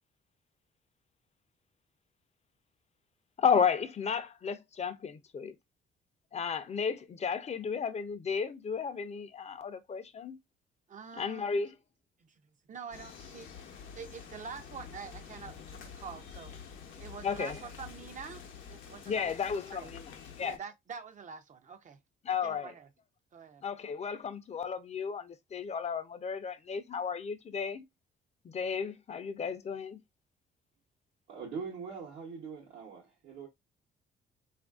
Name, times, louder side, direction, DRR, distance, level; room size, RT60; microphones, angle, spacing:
voice 1, 3.4-5.5 6.3-10.4 11.2-11.7 17.2-17.5 19.1-20.6 22.2-22.7 23.6-27.8 28.4-30.0, left 6 dB, 35° left, 0.4 m, -33 dB
voice 2, 10.9-11.6 12.2-12.3 12.7-19.9 20.4-22.0 22.3-22.9 23.3-23.6, right 6 dB, 40° right, 0.4 m, -46 dB
sound 1, 12.9-20.6, left 6 dB, 75° left, 0.7 m, -48 dB
voice 3, 31.3-33.5, right 5 dB, 80° right, 0.9 m, -42 dB
3.2 x 2.5 x 2.3 m
cardioid pair, 90°, 20 cm